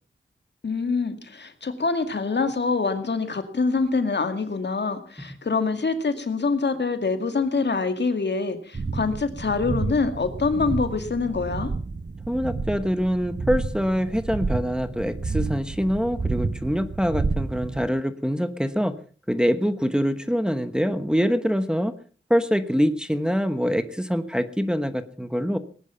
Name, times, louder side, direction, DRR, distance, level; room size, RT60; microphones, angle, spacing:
voice 1, 0.6-11.7, left 4 dB, 60° left, 8 dB, 2.1 m, -25 dB
sound 1, 8.7-17.9, right 3 dB, 35° right, 0.9 m, -30 dB
voice 2, 12.3-18.9 19.3-21.9 22.3-25.6, equal, 5° right, 10 dB, 1.2 m, -24 dB
19.0 x 11.0 x 5.7 m, 0.41 s
wide cardioid pair, 65°, 20 cm